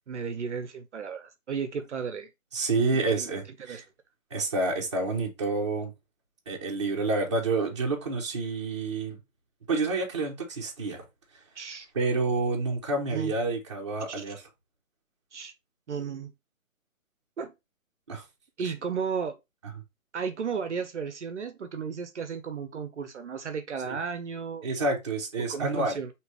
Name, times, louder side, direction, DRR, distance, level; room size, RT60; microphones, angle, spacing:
voice 1, 0.1-2.3 2.9-3.3 3.7-3.8 11.6-11.9 13.1-13.3 14.1-14.3 15.3-15.5 15.9-16.3 17.4-17.5 18.6-19.4 20.1-24.7 25.5-26.1, right 6 dB, 60° right, 0.6 m, -34 dB
voice 2, 2.5-3.9 4.3-5.9 6.5-9.2 9.7-11.0 11.9-14.4 18.1-18.2 18.6-18.7 23.8-24.0 24.6-26.0, right 3 dB, 20° right, 0.7 m, -28 dB
5.0 x 2.9 x 3.1 m
hypercardioid pair, 170°, 41 cm